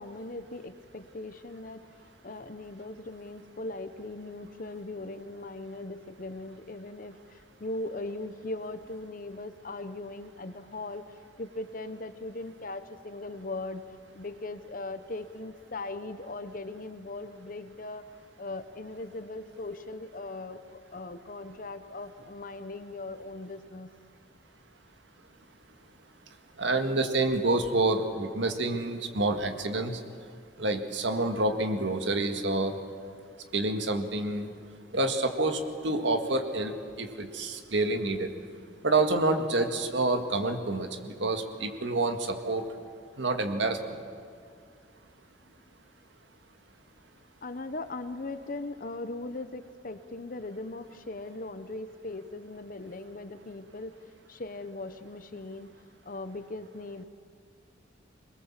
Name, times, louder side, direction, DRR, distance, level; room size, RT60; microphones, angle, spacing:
voice 1, 0.0-1.9 2.2-23.9 47.4-53.9 54.3-55.7 56.0-57.0, left 2 dB, 45° left, 11 dB, 0.9 m, -39 dB
voice 2, 26.6-30.0 30.6-32.7 33.5-34.5 34.9-38.3 38.8-42.6 43.2-44.0, right 2 dB, 70° right, 5 dB, 1.8 m, -28 dB
22.5 x 20.5 x 7.5 m, 2.2 s
head